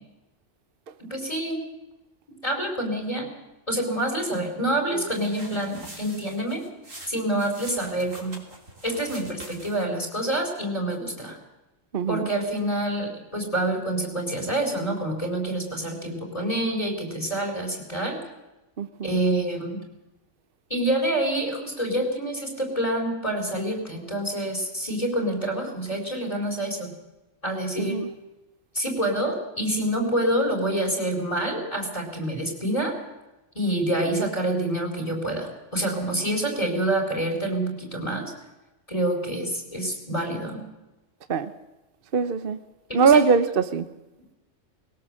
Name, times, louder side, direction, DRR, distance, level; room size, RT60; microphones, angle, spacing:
voice 1, 1.0-1.6 2.4-3.3 3.7-6.6 7.1-8.4 8.8-11.4 12.1-18.2 19.0-19.8 20.7-26.9 27.4-28.0 28.7-32.9 33.5-38.3 38.9-40.6 42.9-43.3, right 1 dB, 25° left, 2 dB, 4.3 m, -27 dB
sound 1, 5.0-10.0, right 1 dB, 75° right, 3.6 m, -45 dB
voice 2, 11.9-12.3 18.8-19.1 27.8-28.1 41.3-41.5 42.1-42.6 42.9-43.9, right 5 dB, 50° right, 12 dB, 1.0 m, -21 dB
20.5 x 19.0 x 7.6 m, 1.0 s
omnidirectional pair, 1.3 m